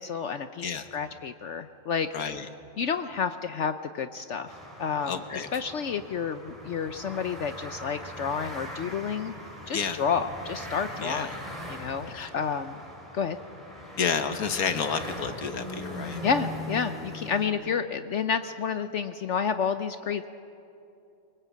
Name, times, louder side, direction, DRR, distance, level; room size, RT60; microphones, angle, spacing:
voice 1, 0.0-2.1 2.8-4.5 4.8-9.3 9.7-11.3 11.7-12.8 13.1-13.4 16.2-20.3, left 6 dB, 60° left, 10 dB, 0.9 m, -30 dB
voice 2, 2.1-2.5 5.1-5.5 9.7-10.0 11.0-11.4 12.1-12.3 14.0-16.2, left 6 dB, 85° left, 8 dB, 1.7 m, -30 dB
sound 1, 4.5-17.5, equal, ahead, 4.5 m, -41 dB
23.0 x 22.5 x 8.4 m, 2.8 s
omnidirectional pair, 1.5 m